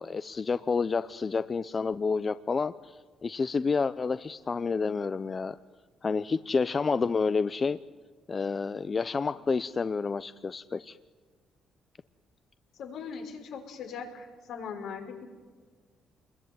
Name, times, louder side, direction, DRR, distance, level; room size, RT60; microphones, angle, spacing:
voice 1, 0.0-5.6 6.0-7.8 8.3-11.0, left 4 dB, 35° left, 13 dB, 0.8 m, -29 dB
voice 2, 12.8-15.3, left 6 dB, 80° left, 4 dB, 5.6 m, -40 dB
27.0 x 21.5 x 9.6 m, 1.5 s
cardioid pair, 90°, 0 cm